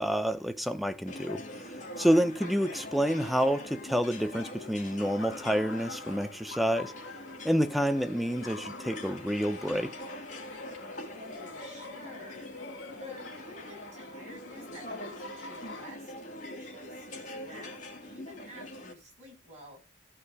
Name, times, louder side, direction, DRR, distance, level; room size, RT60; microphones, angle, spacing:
voice 1, 0.0-1.4 2.0-6.9 7.4-9.9, equal, ahead, 0.7 m, -28 dB
sound 1, 1.1-18.9, left 1 dB, 40° left, 2.7 m, -44 dB
Laughter, 5.0-15.9, left 3 dB, 75° left, 3.1 m, -46 dB
voice 2, 11.1-19.9, left 1 dB, 35° right, 7.8 m, -50 dB
14.0 x 5.0 x 4.9 m
head